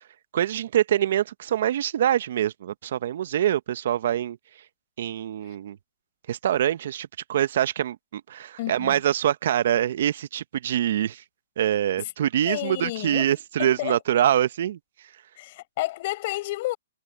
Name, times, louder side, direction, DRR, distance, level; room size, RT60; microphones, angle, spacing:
voice 1, 0.3-4.4 5.0-5.8 6.3-11.2 11.6-14.8, right 11 dB, 55° right, 1.1 m, -24 dB
voice 2, 8.6-9.0 12.4-13.3 13.6-14.0 15.4-16.8, left 18 dB, 45° left, 5.9 m, -31 dB
hypercardioid pair, 140°, 0 cm